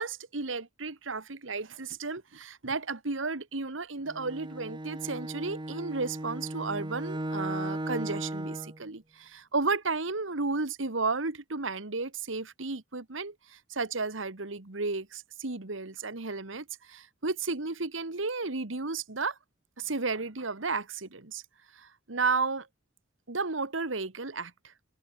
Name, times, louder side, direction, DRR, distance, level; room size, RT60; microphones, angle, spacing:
voice 1, 0.0-19.4 19.8-21.4 21.7-22.7 23.3-24.7, right 3 dB, 75° right, 1.7 m, -33 dB
Bowed string instrument, 4.1-8.8, right 1 dB, 25° right, 1.4 m, -36 dB
head